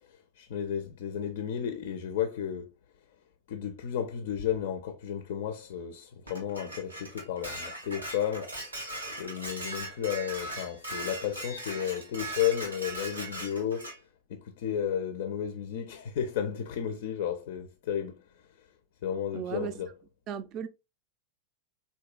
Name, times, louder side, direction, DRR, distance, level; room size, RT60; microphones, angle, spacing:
voice 1, 0.4-2.7 3.5-8.5 9.2-13.9 14.3-18.2 19.0-19.9, left 9 dB, 60° left, 0.4 m, -33 dB
Dishes pots and pans, 6.3-14.0, right 1 dB, 90° right, 0.9 m, -39 dB
voice 2, 19.3-19.8 20.3-20.7, right 8 dB, 40° right, 0.4 m, -36 dB
3.6 x 2.6 x 2.2 m
figure-of-eight pair, 90°, 0 cm